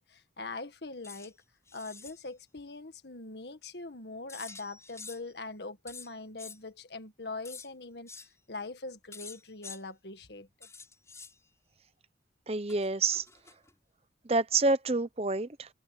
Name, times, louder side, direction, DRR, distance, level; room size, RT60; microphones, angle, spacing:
voice 1, 0.0-1.4 1.7-10.7, left 3 dB, 70° left, 1.7 m, -42 dB
sound 1, 1.0-1.3 1.7-2.2 4.3-5.3 5.9-6.6 7.4-7.7 8.1-8.3 9.1-9.8 10.6-11.3 12.7-13.7, left 5 dB, 15° left, 7.8 m, -47 dB
voice 2, 12.5-13.2 14.2-15.7, right 3 dB, 35° right, 0.8 m, -28 dB
head